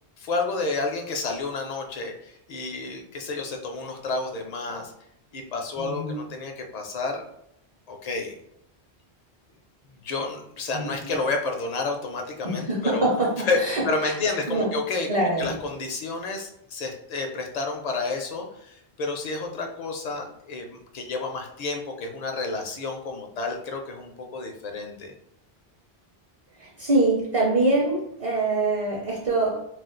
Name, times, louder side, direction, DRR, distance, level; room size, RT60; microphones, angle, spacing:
voice 1, 0.2-4.9 5.3-7.2 7.9-8.4 10.0-13.1 13.4-13.6 13.8-15.1 15.4-25.1, left 3 dB, 50° left, 3 dB, 0.5 m, -30 dB
voice 2, 5.8-6.2 10.7-11.1 12.4-14.1 14.5-14.7 15.1-15.5 26.6-29.7, right 2 dB, 40° right, -3 dB, 0.6 m, -24 dB
2.4 x 2.3 x 3.7 m, 0.75 s
omnidirectional pair, 1.1 m